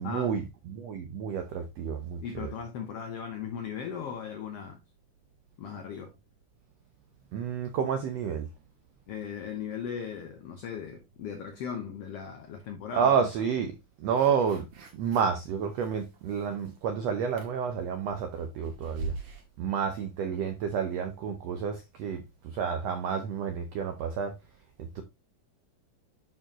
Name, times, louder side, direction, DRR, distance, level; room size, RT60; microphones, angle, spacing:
voice 1, 0.0-2.5 7.3-8.5 12.9-14.7 14.9-19.1 19.6-24.4 24.8-25.0, right 7 dB, 80° right, 1.4 m, -30 dB
voice 2, 2.2-4.8 5.6-6.1 9.1-13.1, left 7 dB, 65° left, 1.5 m, -37 dB
sound 1, 14.1-15.4 15.7-16.9 17.3-19.4, right 3 dB, 50° right, 2.2 m, -42 dB
10.5 x 4.5 x 2.9 m
omnidirectional pair, 3.9 m